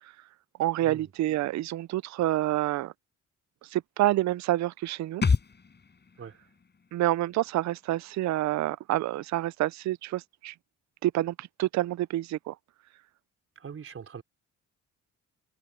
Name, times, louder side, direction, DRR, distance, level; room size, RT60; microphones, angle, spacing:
voice 1, 0.6-2.9 3.6-5.2 6.9-10.5 11.0-12.5, right 15 dB, 65° right, 0.5 m, -28 dB
sound 1, 5.2-8.7 9.0-9.1, left 5 dB, 35° left, 6.4 m, -32 dB
voice 2, 13.6-14.2, right 7 dB, 45° right, 4.3 m, -42 dB
cardioid pair, 90°, 30 cm